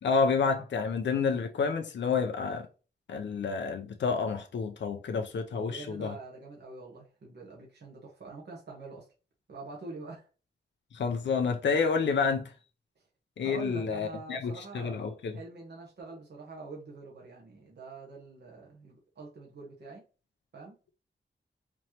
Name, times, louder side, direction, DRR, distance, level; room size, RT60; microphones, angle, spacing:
voice 1, 0.0-2.7 3.1-6.1 10.9-12.5 13.4-15.4, left 5 dB, 75° left, 0.5 m, -29 dB
voice 2, 5.5-9.1 9.5-10.3 13.4-20.0 20.5-20.8, right 3 dB, 65° right, 1.2 m, -45 dB
4.3 x 3.0 x 2.9 m
wide cardioid pair, 145°, 19 cm